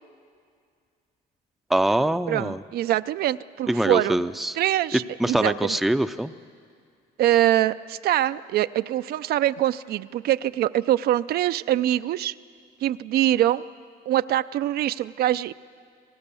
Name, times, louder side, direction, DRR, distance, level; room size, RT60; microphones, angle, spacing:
voice 1, 1.7-2.6 3.7-4.6 4.9-6.3, right 1 dB, ahead, 11 dB, 0.5 m, -24 dB
voice 2, 2.3-4.2 4.6-5.8 7.2-12.3 12.8-13.6 14.1-15.5, right 13 dB, 65° right, 13 dB, 0.5 m, -24 dB
26.5 x 17.0 x 6.9 m, 2.2 s
cardioid pair, 110°, 17 cm